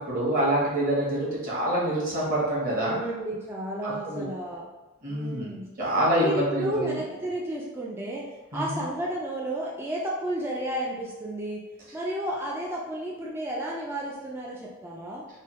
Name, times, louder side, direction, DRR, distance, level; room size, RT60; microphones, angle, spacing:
voice 1, 0.0-3.0 3.8-4.2 5.0-5.5 5.8-6.9 8.5-8.8, right 1 dB, 40° right, -6 dB, 1.2 m, -26 dB
voice 2, 2.7-4.7 5.1-5.7 6.2-11.6 11.9-15.2, right 1 dB, 10° right, -4 dB, 0.3 m, -32 dB
3.2 x 2.2 x 4.2 m, 1.1 s
head